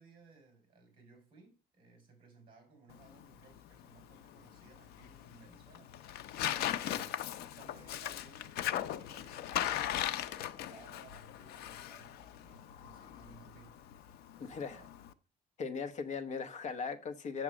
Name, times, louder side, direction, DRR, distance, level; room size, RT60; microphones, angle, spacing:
voice 1, 0.0-14.0 14.4-14.9, right 4 dB, 30° right, 4.7 m, -60 dB
Tearing, 2.9-15.1, left 11 dB, 90° left, 0.6 m, -39 dB
voice 2, 14.4-14.8 15.6-17.4, left 5 dB, 45° left, 1.0 m, -38 dB
7.5 x 7.1 x 6.2 m
cardioid pair, 180°, 16 cm